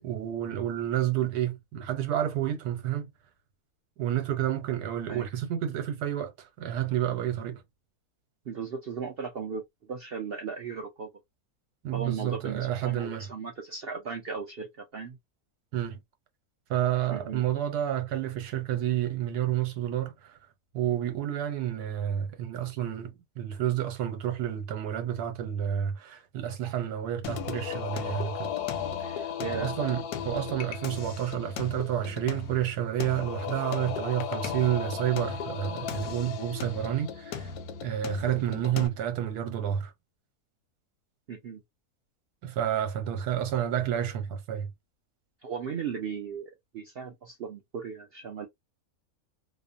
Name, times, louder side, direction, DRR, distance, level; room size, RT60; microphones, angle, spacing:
voice 1, 0.0-3.1 4.0-7.6 11.8-13.3 15.7-16.0 16.7-20.4 20.7-28.5 29.0-37.5 37.8-39.9 42.4-44.7, right 11 dB, 90° right, 1.3 m, -30 dB
voice 2, 8.5-11.1 11.9-15.2 17.1-17.4 29.4-29.7 38.3-38.6 41.3-41.6 45.4-48.5, right 6 dB, 65° right, 0.6 m, -37 dB
Singing, 27.2-38.9, left 7 dB, 90° left, 1.1 m, -36 dB
2.9 x 2.0 x 2.4 m
omnidirectional pair, 1.6 m